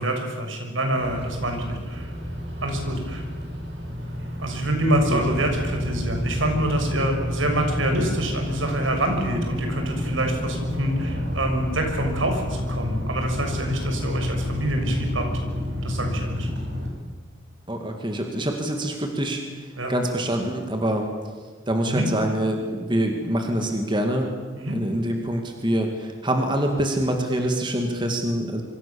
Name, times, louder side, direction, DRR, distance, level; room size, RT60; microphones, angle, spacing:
voice 1, 0.0-2.1 2.6-3.2 4.4-15.3 15.8-16.5 19.8-19.9 21.9-22.1 24.6-24.8, right 1 dB, 80° right, 3 dB, 6.2 m, -26 dB
sound 1, 1.0-16.9, left 1 dB, 60° right, 7.7 m, -29 dB
voice 2, 17.7-21.1 21.7-24.3 24.6-28.6, right 1 dB, 25° right, 3 dB, 2.4 m, -25 dB
26.5 x 25.5 x 7.3 m, 1.4 s
head